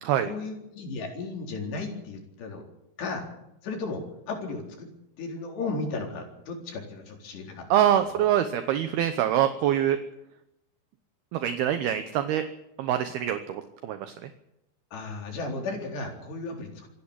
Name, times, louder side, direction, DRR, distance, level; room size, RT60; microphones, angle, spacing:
voice 1, 0.2-2.7 3.0-3.2 3.6-4.9 5.2-7.7 8.1-8.3 14.9-16.9, left 3 dB, 70° left, 2 dB, 6.1 m, -35 dB
voice 2, 7.7-10.0 11.3-12.4 12.8-14.3, right 10 dB, 70° right, 9 dB, 2.7 m, -25 dB
26.5 x 10.5 x 9.9 m, 0.86 s
omnidirectional pair, 5.1 m